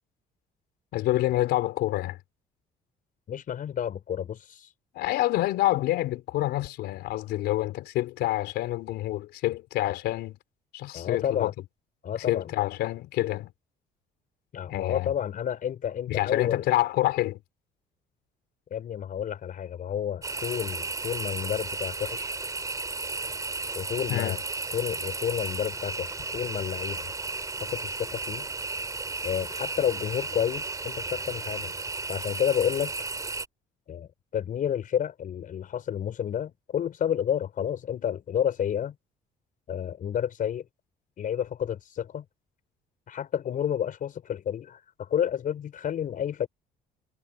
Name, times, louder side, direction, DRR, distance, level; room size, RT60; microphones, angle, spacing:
voice 1, 0.9-2.2 4.9-10.4 10.7-11.5 12.3-13.5 14.7-15.1 16.1-17.4 24.1-24.4, left 15 dB, 80° left, 4.3 m, -27 dB
voice 2, 3.3-4.7 10.9-11.5 12.0-12.5 14.5-16.6 18.7-22.3 23.8-24.4 24.7-27.1 27.6-28.5 29.2-31.7 32.1-32.9 33.9-38.9 39.7-40.6 41.2-42.2 43.1-46.5, left 9 dB, 55° left, 5.6 m, -30 dB
sound 1, 20.2-33.5, right 3 dB, 20° right, 5.5 m, -34 dB
cardioid pair, 110°, 17 cm